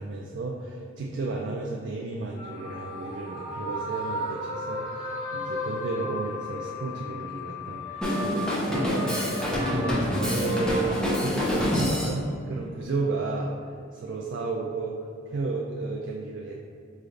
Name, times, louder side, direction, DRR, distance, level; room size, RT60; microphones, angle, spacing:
voice 1, 0.0-13.5 13.9-16.6, right 3 dB, 60° right, -2 dB, 0.3 m, -33 dB
sound 1, 2.2-7.2 7.6-12.3, equal, 35° right, 0.9 m, -36 dB
sound 2, 2.4-9.2, left 5 dB, 60° left, 1.3 m, -41 dB
Drum kit, 8.0-12.2, left 1 dB, 5° left, 0.6 m, -27 dB
4.8 x 3.2 x 2.5 m, 2.3 s
head